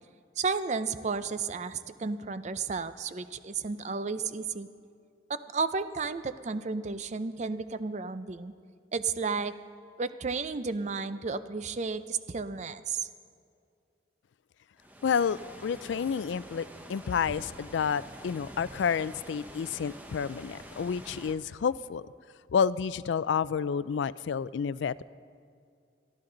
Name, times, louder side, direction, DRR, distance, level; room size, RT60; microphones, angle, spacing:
voice 1, 0.4-4.7 5.3-8.5 8.9-9.5 10.0-13.1, right 4 dB, 40° right, 12 dB, 0.5 m, -32 dB
sound 1, 14.8-21.3, equal, 10° right, 1.1 m, -47 dB
voice 2, 15.0-22.1 22.5-25.0, left 6 dB, 85° left, 18 dB, 0.4 m, -30 dB
23.0 x 13.5 x 3.9 m, 2.4 s
head